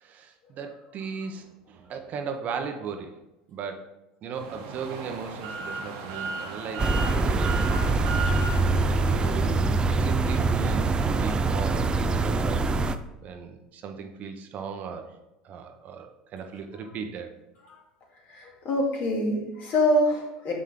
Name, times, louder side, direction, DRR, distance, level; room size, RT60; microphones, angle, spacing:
voice 1, 0.0-3.2 3.5-3.9 4.2-8.2 8.8-12.6 13.2-15.2 15.4-17.3, right 5 dB, 45° right, 5 dB, 0.9 m, -37 dB
sound 1, 4.3-9.6, right 3 dB, 70° right, 1.2 m, -35 dB
sound 2, 6.8-13.0, right 3 dB, 25° right, 0.4 m, -24 dB
voice 2, 18.3-20.5, left 1 dB, 50° left, -2 dB, 2.4 m, -25 dB
6.2 x 5.8 x 3.7 m, 0.98 s
hypercardioid pair, 90°, 4 cm